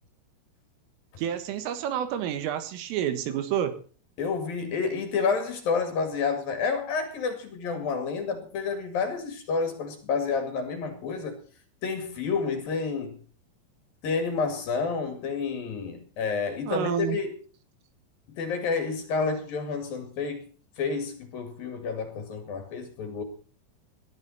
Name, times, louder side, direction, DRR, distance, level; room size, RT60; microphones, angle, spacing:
voice 1, 1.2-3.8 16.7-17.2, right 9 dB, 80° right, 10 dB, 4.1 m, -29 dB
voice 2, 4.2-11.4 11.8-13.2 14.0-17.3 18.4-20.5 20.8-23.2, left 5 dB, 55° left, 7 dB, 3.4 m, -29 dB
19.5 x 13.0 x 4.1 m, 0.38 s
omnidirectional pair, 5.8 m